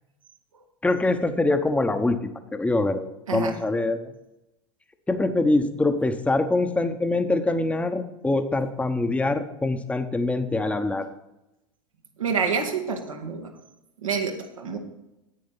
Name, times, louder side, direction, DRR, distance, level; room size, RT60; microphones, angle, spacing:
voice 1, 0.8-2.2 2.5-4.0 5.1-11.1, left 2 dB, 10° left, 8 dB, 0.9 m, -24 dB
voice 2, 12.2-13.5 14.0-14.8, right 5 dB, 85° right, 2 dB, 1.7 m, -27 dB
9.5 x 8.6 x 5.6 m, 0.91 s
hypercardioid pair, 85°, 17 cm